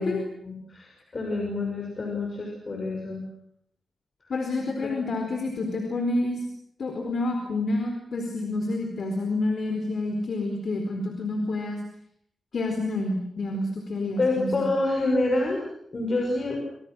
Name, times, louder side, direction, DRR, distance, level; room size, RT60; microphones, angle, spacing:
voice 1, 0.0-3.2 4.8-4.9 14.2-15.6 15.9-16.6, left 2 dB, 35° left, 0 dB, 6.2 m, -27 dB
voice 2, 4.3-6.4 6.8-11.8 12.5-14.7, left 2 dB, 55° left, 3 dB, 4.4 m, -28 dB
29.5 x 27.5 x 6.4 m, 0.70 s
wide cardioid pair, 155°, 0 cm